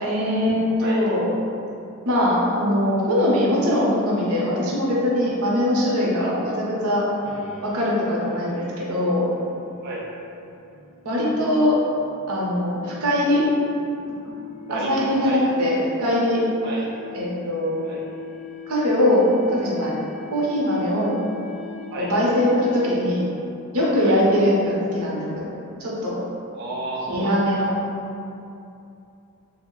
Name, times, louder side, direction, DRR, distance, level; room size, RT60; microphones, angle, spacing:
voice 1, 0.0-1.2 2.0-7.0 7.6-9.3 11.0-11.8 12.3-13.5 14.0-14.1 14.7-16.4 17.1-17.8 18.7-19.9 20.3-21.2 22.0-23.2 23.7-25.5 25.8-26.2 27.1-27.7, left 1 dB, 85° right, -5 dB, 0.8 m, -21 dB
voice 2, 6.1-6.5 9.8-10.1 14.7-15.4 16.6-16.9 17.8-18.0 21.9-22.1 24.0-24.2 26.5-27.4, right 2 dB, 50° right, -4 dB, 0.3 m, -32 dB
sound 1, 7.2-23.2, left 8 dB, 30° left, 0.4 m, -42 dB
3.5 x 2.1 x 3.6 m, 2.7 s
head